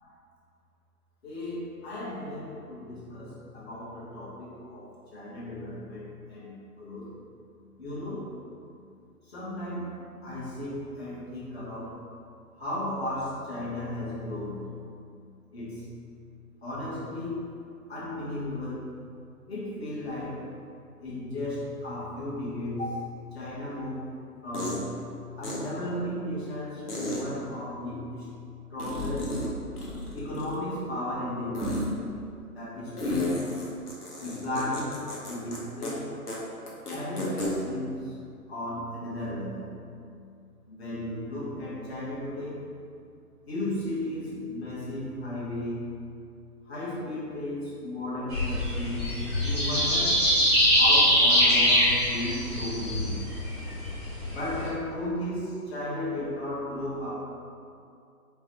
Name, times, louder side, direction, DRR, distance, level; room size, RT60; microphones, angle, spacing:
voice 1, 1.2-7.1 7.8-8.4 9.3-12.0 12.6-14.8 15.5-15.9 16.6-17.5 17.9-19.0 19.4-20.5 21.0-23.1 23.3-24.1 24.4-25.0 25.4-28.3 28.7-29.4 30.1-31.9 32.5-33.4 34.2-36.2 36.9-38.1 38.5-39.8 40.7-42.6 43.5-46.0 46.7-50.3 50.8-53.3 54.3-57.3, left 1 dB, 40° left, -8 dB, 1.2 m, -35 dB
sound 1, 23.7-23.8 24.5-24.8 25.4-25.6 26.9-27.2 28.8-29.5 29.8-30.7 31.5-31.9 33.0-35.6 35.8-35.9 36.3-36.4 36.7-37.5, left 1 dB, 75° left, 0.9 m, -32 dB
sound 2, 48.3-54.7, equal, 15° left, 0.6 m, -23 dB
4.6 x 2.2 x 2.8 m, 2.4 s
figure-of-eight pair, 135°, 46 cm